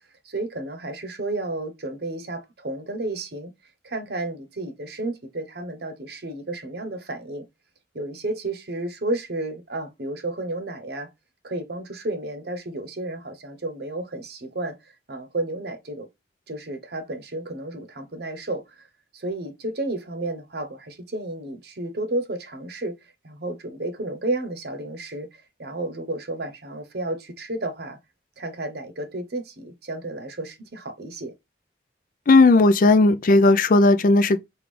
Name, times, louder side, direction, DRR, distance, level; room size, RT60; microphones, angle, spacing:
voice 1, 0.2-3.5 3.8-7.4 7.9-11.1 11.4-16.1 16.5-18.9 19.1-28.0 28.4-31.3, right 2 dB, 60° right, 0.8 m, -32 dB
voice 2, 32.3-34.4, left 2 dB, 45° left, 0.4 m, -15 dB
5.2 x 2.4 x 3.2 m
head